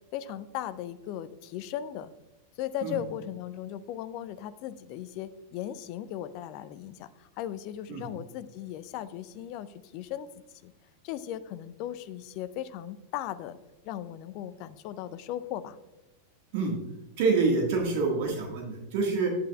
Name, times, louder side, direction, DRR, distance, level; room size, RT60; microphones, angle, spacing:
voice 1, 0.1-2.1 2.6-10.3 10.6-10.7 11.0-13.6 13.8-15.8, left 11 dB, 45° left, 15 dB, 0.5 m, -37 dB
voice 2, 17.2-19.3, right 4 dB, 50° right, 0 dB, 1.7 m, -26 dB
10.0 x 9.1 x 2.3 m, 1.1 s
figure-of-eight pair, 90°, 0 cm